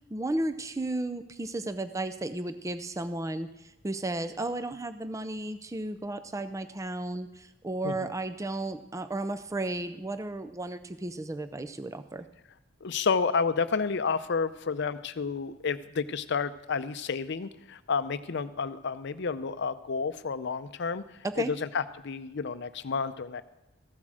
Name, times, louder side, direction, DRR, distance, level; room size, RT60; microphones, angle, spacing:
voice 1, 0.1-12.3 21.2-21.5, right 2 dB, 15° right, 10 dB, 0.4 m, -34 dB
voice 2, 12.8-23.4, left 5 dB, 55° left, 13 dB, 0.5 m, -30 dB
14.5 x 7.4 x 6.3 m, 0.93 s
head